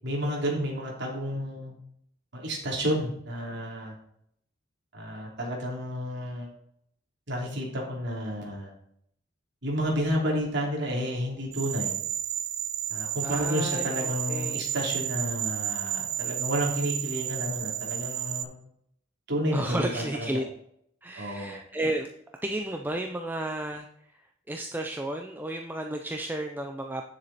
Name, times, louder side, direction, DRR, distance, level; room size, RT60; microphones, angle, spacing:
voice 1, 0.0-1.7 2.3-4.0 4.9-6.5 7.3-8.7 9.6-11.9 12.9-18.5 19.3-20.4 21.1-21.6, equal, 60° right, -2 dB, 3.1 m, -31 dB
sound 1, 11.5-18.4, right 11 dB, 90° right, 0.7 m, -32 dB
voice 2, 13.2-14.7 16.6-16.9 19.5-20.4 21.0-22.1 22.4-23.9 24.5-27.0, right 1 dB, 10° right, 3 dB, 0.6 m, -33 dB
9.9 x 7.3 x 4.2 m, 0.70 s
head